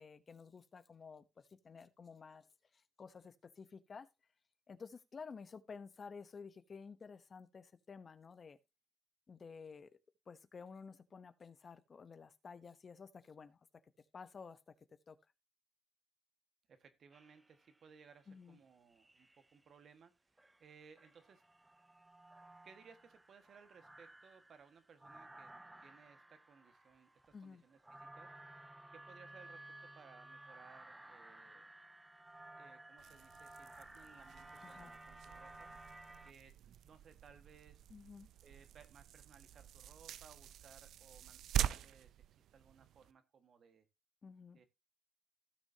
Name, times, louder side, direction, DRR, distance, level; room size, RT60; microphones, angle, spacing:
voice 1, 0.0-2.5 2.7-4.1 4.7-8.6 9.3-10.0 10.3-13.6 14.1-14.7 15.1-15.2 18.3-18.6 27.3-27.6 34.6-34.9 37.9-38.3 44.2-44.6, left 5 dB, 40° left, 0.9 m, -53 dB
voice 2, 16.7-21.4 22.6-25.5 25.8-28.3 28.9-31.7 32.5-35.7 36.2-36.5 36.8-37.8 38.4-41.4 41.7-42.2 42.5-43.9 44.5-44.6, right 6 dB, 55° right, 1.6 m, -62 dB
sound 1, 17.1-17.9 18.9-19.6 20.4-36.3, right 1 dB, 10° right, 0.6 m, -57 dB
sound 2, 33.0-43.1, right 11 dB, 75° right, 0.5 m, -44 dB
16.5 x 6.3 x 2.8 m
cardioid pair, 90°, 0 cm